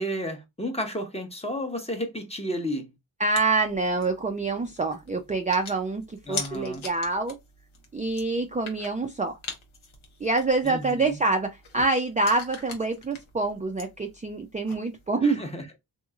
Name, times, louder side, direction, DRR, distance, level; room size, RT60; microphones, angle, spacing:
voice 1, 0.0-2.9 6.3-6.8 10.6-11.1 15.2-15.6, equal, 15° left, 0.8 m, -32 dB
voice 2, 3.2-7.4 7.9-9.4 10.2-15.5, right 3 dB, 15° right, 0.4 m, -26 dB
sound 1, 3.3-15.1, left 5 dB, 85° left, 0.9 m, -43 dB
2.9 x 2.7 x 2.4 m
cardioid pair, 55°, 47 cm